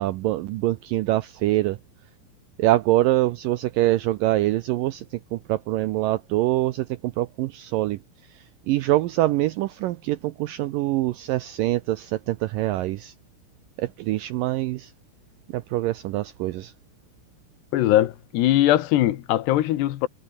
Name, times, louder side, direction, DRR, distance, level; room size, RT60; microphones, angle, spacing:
voice 1, 0.0-1.8 2.6-8.0 8.3-13.1 13.8-14.9 15.5-16.7, right 16 dB, 85° right, 2.0 m, -24 dB
voice 2, 17.7-20.1, left 14 dB, 80° left, 3.4 m, -20 dB
omnidirectional pair, 4.8 m